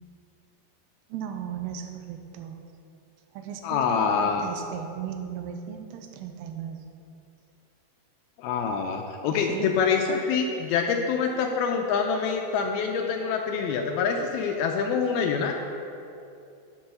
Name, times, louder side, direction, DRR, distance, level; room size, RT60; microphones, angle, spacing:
voice 1, 1.1-2.6 3.3-6.8 9.3-9.7 10.1-10.3, right 8 dB, 80° right, 5 dB, 2.7 m, -36 dB
voice 2, 3.6-4.5 8.4-15.6, left 6 dB, 85° left, 3 dB, 2.2 m, -26 dB
12.0 x 5.5 x 6.6 m, 2.6 s
omnidirectional pair, 5.0 m